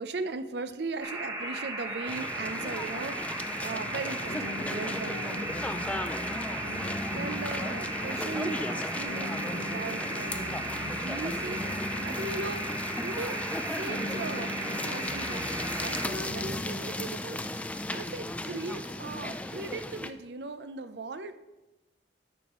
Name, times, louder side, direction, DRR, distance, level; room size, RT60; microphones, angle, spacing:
voice 1, 0.0-5.5 6.5-14.5 14.8-21.4, right 3 dB, 65° right, 11 dB, 0.5 m, -39 dB
sound 1, 1.0-16.1, right 1 dB, 20° right, 1.1 m, -36 dB
sound 2, 2.1-20.1, left 1 dB, 5° left, 0.3 m, -36 dB
sound 3, 4.2-16.8, left 1 dB, 70° left, 1.1 m, -41 dB
11.5 x 8.0 x 3.0 m, 1.1 s
head